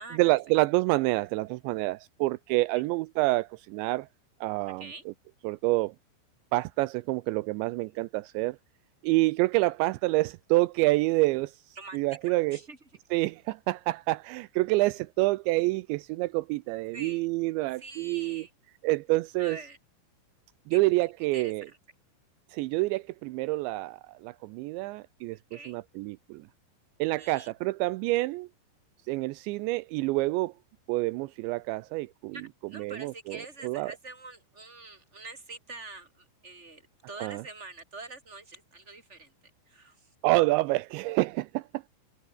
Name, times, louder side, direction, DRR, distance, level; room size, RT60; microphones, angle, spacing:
voice 1, 0.1-4.1 4.4-5.1 5.4-5.9 6.5-8.6 9.0-11.6 11.9-12.6 13.1-18.5 18.8-19.6 20.7-21.7 22.5-26.5 27.0-28.5 29.1-30.5 30.9-32.4 32.7-33.9 37.2-37.4 40.2-41.9, right 21 dB, 85° right, 2.5 m, -27 dB
voice 2, 11.8-12.8 16.9-17.2 17.8-18.5 19.4-19.8 20.7-20.8 21.3-21.5 25.5-25.8 27.2-27.5 32.3-36.8 37.1-39.3 39.7-40.1, right 3 dB, 15° right, 4.9 m, -45 dB
omnidirectional pair, 5.9 m